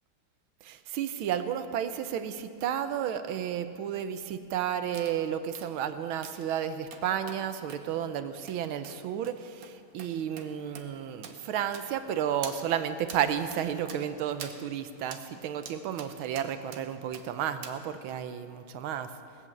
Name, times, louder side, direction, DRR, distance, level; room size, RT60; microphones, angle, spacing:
voice 1, 0.6-19.1, right 9 dB, 90° right, 10 dB, 1.6 m, -32 dB
sound 1, 4.9-5.1 5.5-5.7 6.2-6.5 6.9-7.4 7.7-7.8 8.5-8.6 8.8-9.0 9.2-9.4 9.6-9.7 10.0-10.1 10.4-10.5 10.8-10.9 11.2-11.4 11.7-12.1 12.4-12.6 13.1-13.2 13.5-13.6 13.9-14.0 14.4-14.6 15.1-15.2 15.6-16.1 16.4-16.8 17.1-17.3 17.6-17.8 18.1-18.2, right 6 dB, 55° right, 1.2 m, -44 dB
18.5 x 8.1 x 7.3 m, 2.4 s
omnidirectional pair, 2.2 m